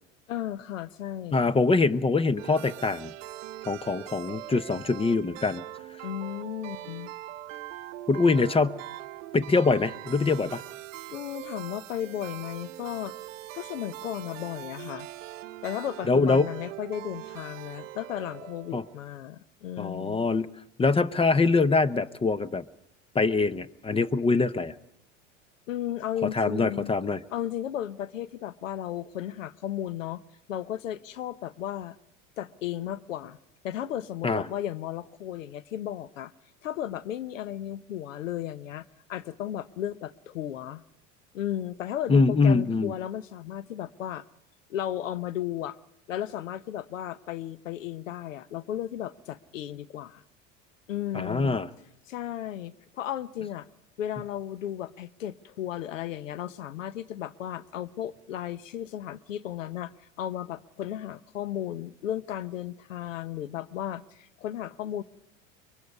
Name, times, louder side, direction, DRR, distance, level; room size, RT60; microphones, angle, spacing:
voice 1, 0.3-1.5 6.0-7.1 11.1-13.1 13.5-15.1 15.6-20.3 25.7-26.9 27.3-30.2 30.5-32.0 32.4-33.4 33.6-36.3 36.6-40.8 41.3-44.2 44.7-45.8 46.1-50.2 50.9-51.6 52.1-53.7 54.0-65.0, left 11 dB, 85° left, 16 dB, 0.8 m, -34 dB
voice 2, 1.3-3.1 3.7-5.6 8.1-8.8 9.3-10.6 16.1-16.5 18.7-18.8 19.8-20.5 20.8-22.6 23.1-24.7 26.2-27.2 34.2-34.4 42.1-42.9 51.1-51.7, left 3 dB, 15° left, 16 dB, 0.7 m, -24 dB
sound 1, 2.4-19.0, right 15 dB, 75° right, 0.9 m, -42 dB
24.0 x 22.5 x 5.4 m, 0.86 s
hypercardioid pair, 90°, 38 cm